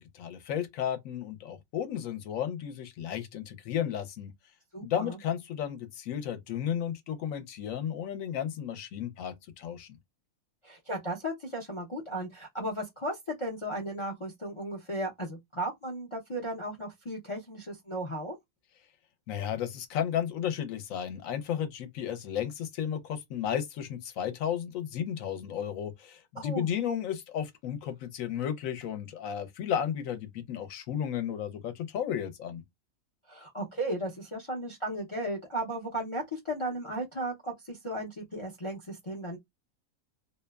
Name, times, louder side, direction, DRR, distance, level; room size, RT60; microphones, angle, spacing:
voice 1, 0.0-4.3 4.8-10.0 19.3-32.6, left 9 dB, 70° left, 1.0 m, -33 dB
voice 2, 4.7-5.2 10.6-18.4 26.3-26.7 33.3-39.4, right 1 dB, 40° left, 0.4 m, -35 dB
2.7 x 2.1 x 2.2 m
omnidirectional pair, 1.5 m